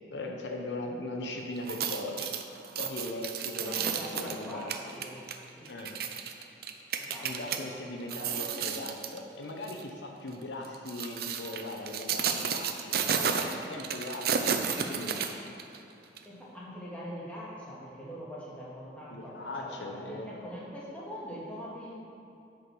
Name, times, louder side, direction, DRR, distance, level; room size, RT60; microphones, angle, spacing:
voice 1, 0.1-2.3 2.8-4.7 5.7-6.0 7.2-15.2 19.1-20.3, left 2 dB, 75° left, 1 dB, 1.0 m, -39 dB
sound 1, 1.6-7.6 8.0-9.2 9.6-9.8 10.6-15.8 16.2-16.3, right 7 dB, 55° right, 0.7 m, -32 dB
voice 2, 3.6-5.2 5.6-5.9 7.0-7.6 8.3-8.8 16.3-22.0, equal, 10° left, -7 dB, 2.3 m, -43 dB
9.9 x 6.6 x 6.3 m, 2.7 s
head